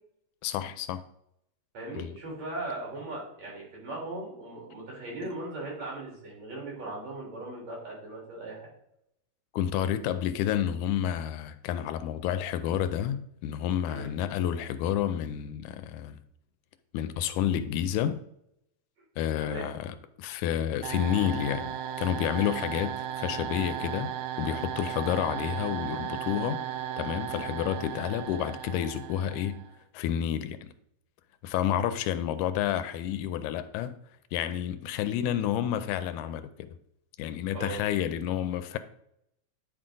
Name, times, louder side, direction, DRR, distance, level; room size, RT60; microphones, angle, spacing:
voice 1, 0.4-1.0 2.0-2.1 5.2-5.3 9.5-16.2 16.9-18.2 19.2-24.1 24.4-26.6 27.0-29.6 29.9-30.7 31.4-34.0 34.3-36.7 37.2-38.8, left 10 dB, 85° left, 2.0 m, -30 dB
voice 2, 1.7-8.7 13.9-14.1 19.4-19.7 37.5-37.8, right 2 dB, 60° right, 4.5 m, -38 dB
sound 1, 20.8-29.7, right 10 dB, 80° right, 1.7 m, -36 dB
9.8 x 4.4 x 3.8 m
omnidirectional pair, 3.4 m